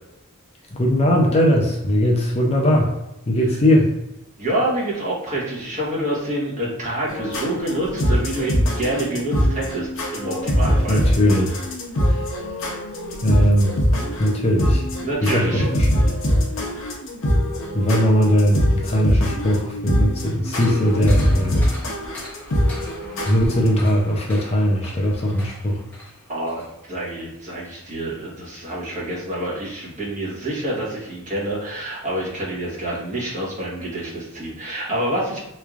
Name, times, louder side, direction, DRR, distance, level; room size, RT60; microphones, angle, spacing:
voice 1, 0.7-2.9 3.3-3.9 10.9-11.5 12.0-12.3 13.2-13.8 14.2-14.9 15.2-16.2 17.7-21.6 23.2-25.8, equal, 30° left, -1 dB, 0.5 m, -19 dB
voice 2, 4.4-11.0 15.0-15.6 26.3-35.4, right 1 dB, 35° right, -6 dB, 1.2 m, -27 dB
sound 1, 7.1-23.7, equal, 65° left, 0.8 m, -22 dB
sound 2, 20.4-26.7 27.1-27.2, left 1 dB, 10° left, 0.9 m, -41 dB
3.4 x 3.2 x 2.4 m, 0.92 s
head